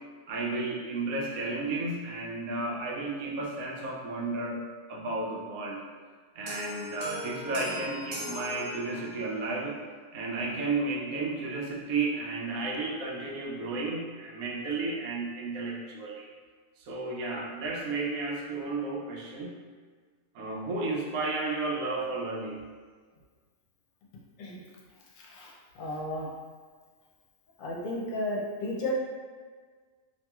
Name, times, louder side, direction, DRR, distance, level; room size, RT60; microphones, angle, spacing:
voice 1, 0.3-4.6 4.9-5.8 6.4-9.8 10.1-16.3 16.8-19.5 20.3-22.6, right 3 dB, 85° right, -2 dB, 1.0 m, -33 dB
sound 1, 6.5-9.3, left 2 dB, 60° right, 0.4 m, -40 dB
voice 2, 25.2-25.5 25.8-26.3 27.6-28.9, left 1 dB, 70° left, -3 dB, 0.9 m, -33 dB
2.9 x 2.7 x 2.3 m, 1.5 s
omnidirectional pair, 1.4 m